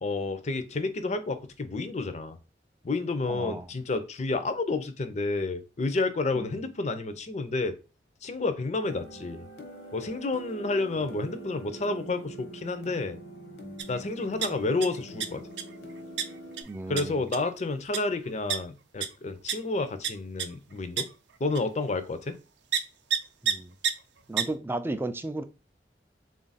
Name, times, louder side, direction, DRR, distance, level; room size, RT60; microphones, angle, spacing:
voice 1, 0.0-2.4 2.8-7.8 8.2-9.5 9.9-13.2 13.9-15.4 16.9-21.1 21.4-22.4, left 3 dB, 40° left, 0.5 m, -30 dB
voice 2, 3.3-3.7 6.4-6.6 16.7-17.2 23.4-23.8 24.3-25.4, right 2 dB, 15° right, 0.3 m, -34 dB
sound 1, 8.8-16.6, right 2 dB, 85° left, 1.0 m, -44 dB
sound 2, 13.8-13.9 14.2-14.9 15.2-15.6 16.2-16.3 16.6-16.7 17.0-17.1 17.3-17.5 17.9-18.0 18.5-18.6 19.0-19.1 19.5-19.6 20.0-20.1 20.4-20.5 21.0-21.1 21.5-21.6 22.7-22.8 23.1-23.2 23.5-23.6 23.8-23.9 24.4-24.5, right 8 dB, 85° right, 0.5 m, -27 dB
3.8 x 2.4 x 4.0 m
head